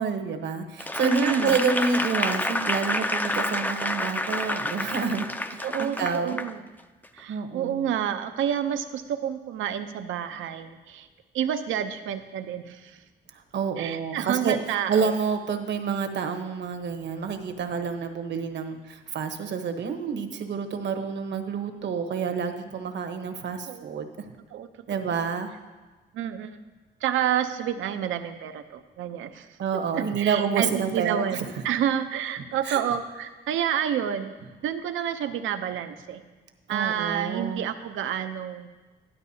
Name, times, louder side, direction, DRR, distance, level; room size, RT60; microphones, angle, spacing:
voice 1, 0.0-6.4 7.3-7.9 13.5-24.3 24.9-25.5 29.6-31.5 32.6-32.8 36.7-37.7, right 5 dB, 65° right, 6 dB, 1.1 m, -28 dB
Applause / Crowd, 0.8-6.5 7.0-7.2, left 1 dB, 10° left, 0.5 m, -29 dB
voice 2, 1.0-1.6 5.6-6.6 7.1-11.1 11.3-13.0 13.8-15.1 23.7-24.0 24.5-25.3 26.1-26.6 27.0-29.5 29.9-34.3 34.6-36.2 36.7-38.7, right 9 dB, 80° right, 9 dB, 0.7 m, -29 dB
12.5 x 11.0 x 2.8 m, 1.2 s
cardioid pair, 90°, 20 cm